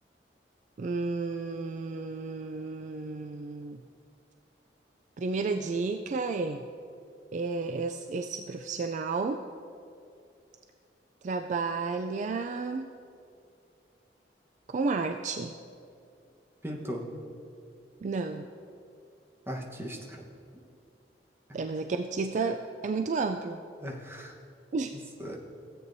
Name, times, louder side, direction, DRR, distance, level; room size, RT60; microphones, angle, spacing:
voice 1, 0.8-3.8 5.2-6.6 7.3-9.4 11.2-12.9 14.7-15.5 18.0-18.5 21.5-23.6 24.7-24.9, right 4 dB, 45° right, 6 dB, 0.3 m, -32 dB
voice 2, 16.6-17.1 19.5-20.2 23.8-24.3 25.2-25.4, equal, 15° right, -1 dB, 1.1 m, -37 dB
16.0 x 8.5 x 2.7 m, 2.5 s
head